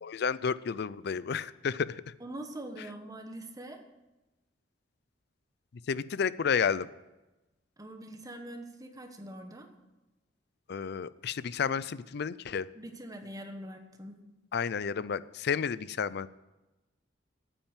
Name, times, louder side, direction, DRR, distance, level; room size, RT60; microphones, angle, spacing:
voice 1, 0.0-2.0 5.9-6.9 10.7-12.7 14.5-16.3, left 6 dB, 60° left, 17 dB, 0.4 m, -31 dB
voice 2, 2.2-3.8 7.8-9.7 12.7-14.2, right 1 dB, 20° right, 5 dB, 1.3 m, -43 dB
9.0 x 8.8 x 9.0 m, 1.1 s
head